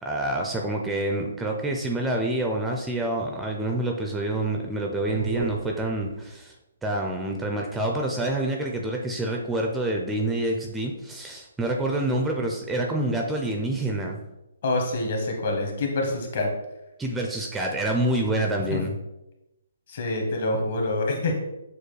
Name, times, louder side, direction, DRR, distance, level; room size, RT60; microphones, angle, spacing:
voice 1, 0.0-6.5 6.8-14.2 17.0-18.9, right 1 dB, 5° right, 1 dB, 0.4 m, -27 dB
sound 1, 4.9-6.5, right 4 dB, 80° right, 0.5 m, -35 dB
voice 2, 14.6-16.5 18.7-18.8 19.9-21.4, left 2 dB, 50° left, 2 dB, 1.1 m, -26 dB
6.6 x 2.3 x 3.1 m, 0.93 s
hypercardioid pair, 160°, 0 cm